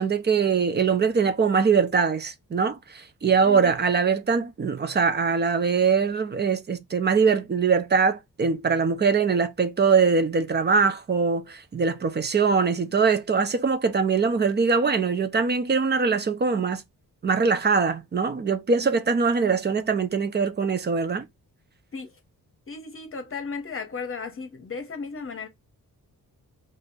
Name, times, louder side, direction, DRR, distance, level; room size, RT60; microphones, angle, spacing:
voice 1, 0.0-16.8 17.2-21.3, right 5 dB, 30° right, 0.5 m, -22 dB
voice 2, 22.7-25.5, left 5 dB, 35° left, 0.9 m, -35 dB
2.8 x 2.5 x 3.9 m
wide cardioid pair, 125°, 35 cm